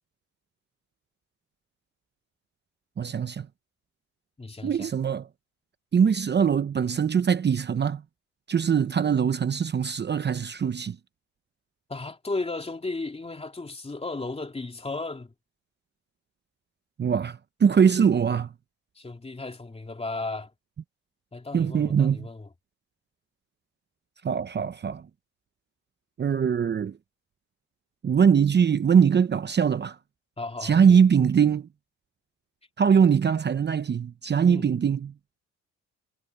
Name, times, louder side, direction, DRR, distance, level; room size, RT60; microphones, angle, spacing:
voice 1, 3.0-3.5 4.6-5.3 5.9-8.0 8.5-11.0 17.0-18.5 21.5-22.3 24.2-25.1 26.2-27.0 28.0-30.0 30.6-31.7 32.8-35.1, right 7 dB, 35° right, 0.8 m, -22 dB
voice 2, 4.4-4.9 11.9-15.3 19.0-20.5 21.3-22.5 30.4-31.0 34.5-34.7, left 3 dB, 20° left, 3.2 m, -35 dB
cardioid pair, 90°, 30 cm